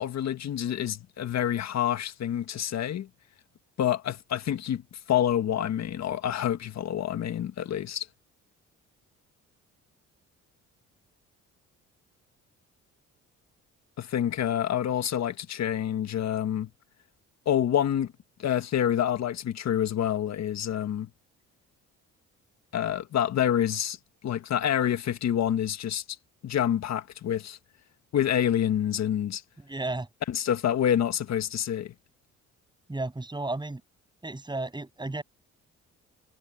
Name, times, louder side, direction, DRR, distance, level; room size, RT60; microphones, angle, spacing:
voice 1, 0.0-3.1 3.8-8.1 14.0-16.7 17.5-18.1 18.4-21.1 22.7-24.0 24.2-26.0 26.4-27.6 28.1-29.4 30.3-31.9, left 10 dB, 60° left, 1.7 m, -27 dB
voice 2, 29.7-30.1 32.9-33.8 34.2-35.2, right 2 dB, 15° right, 8.0 m, -33 dB
cardioid pair, 90°, 30 cm